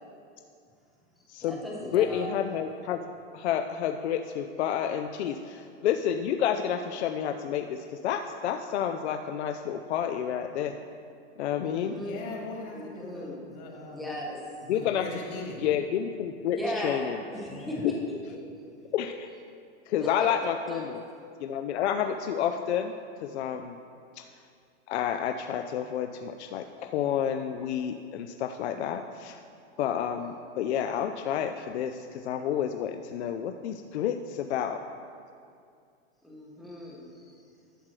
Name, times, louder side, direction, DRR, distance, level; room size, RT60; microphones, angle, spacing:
voice 1, 1.4-2.3 11.7-12.1 12.7-13.3 13.9-14.4 16.6-17.0 17.3-17.9 18.3-18.4 20.0-20.1 20.7-20.9 36.2-37.4, equal, ahead, -4 dB, 0.4 m, -37 dB
voice 2, 1.9-3.0 3.3-10.7 11.4-12.0 14.7-15.1 15.6-16.6 16.8-17.2 18.9-19.3 19.9-21.0 21.4-22.9 23.2-23.7 24.2-24.3 24.9-29.4 29.8-34.8, left 9 dB, 70° left, 6 dB, 0.5 m, -30 dB
voice 3, 12.0-14.1 14.6-15.7 17.5-17.9, left 2 dB, 35° left, -2 dB, 1.7 m, -40 dB
11.5 x 7.4 x 3.2 m, 2.4 s
supercardioid pair, 165°, 35 cm